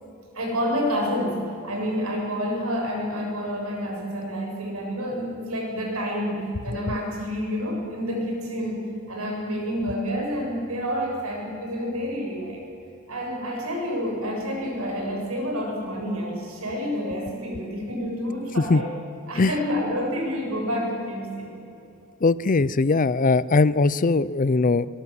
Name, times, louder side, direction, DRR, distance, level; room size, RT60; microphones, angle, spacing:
voice 1, 0.3-6.4 6.6-8.8 9.1-12.6 13.1-18.9 19.3-21.6, equal, 75° right, 0 dB, 7.3 m, -28 dB
voice 2, 22.2-24.9, left 3 dB, 40° left, 18 dB, 0.5 m, -20 dB
23.0 x 22.0 x 7.7 m, 2.7 s
head